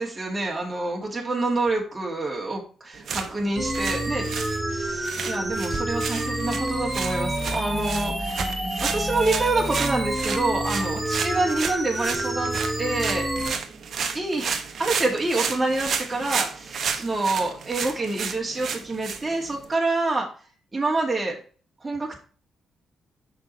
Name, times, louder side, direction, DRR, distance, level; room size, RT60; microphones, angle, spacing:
voice 1, 0.0-4.3 4.7-12.5 12.8-13.6 14.1-20.3 20.7-21.4 21.8-22.2, right 2 dB, 25° right, -1 dB, 2.5 m, -27 dB
sound 1, 2.9-19.7, right 6 dB, 65° right, 1.2 m, -32 dB
sound 2, 3.5-13.5, right 1 dB, 10° right, 2.2 m, -28 dB
6.2 x 6.2 x 4.3 m, 0.39 s
supercardioid pair, 55°, 0 cm